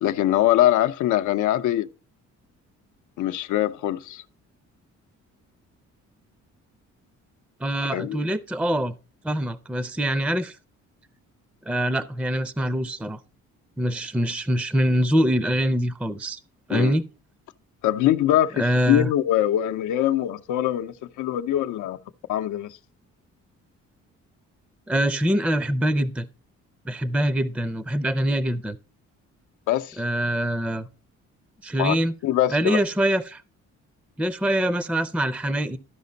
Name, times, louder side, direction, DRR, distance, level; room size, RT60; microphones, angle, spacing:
voice 1, 0.0-1.9 3.2-4.2 7.9-8.2 16.7-16.9 17.8-22.0 22.3-22.8 29.7-30.0 31.8-32.0 32.2-32.8, left 12 dB, 80° left, 0.7 m, -23 dB
voice 2, 7.6-8.9 9.2-10.6 11.7-13.2 13.8-16.4 16.7-17.0 18.6-19.1 24.9-26.3 26.8-28.8 30.0-30.9 31.6-32.1 32.5-33.4 34.2-35.8, equal, 5° right, 0.5 m, -24 dB
13.0 x 5.1 x 3.9 m
cardioid pair, 90°, 30 cm